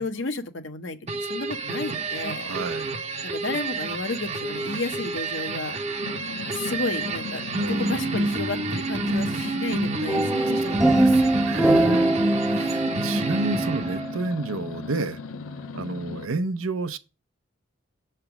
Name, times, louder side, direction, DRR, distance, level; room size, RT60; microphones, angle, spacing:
voice 1, 0.0-2.5 3.2-5.8 6.2-7.4 7.7-11.0, left 3 dB, 60° left, 0.8 m, -32 dB
sound 1, 1.1-14.2, right 2 dB, 30° right, 0.7 m, -29 dB
voice 2, 2.4-3.0 7.6-8.4 10.7-12.2 12.4-15.2 15.7-17.0, right 3 dB, 85° right, 0.7 m, -31 dB
sound 2, 6.0-16.3, left 4 dB, 85° left, 0.4 m, -38 dB
sound 3, 10.1-14.3, right 1 dB, ahead, 0.3 m, -23 dB
7.0 x 3.3 x 5.8 m
head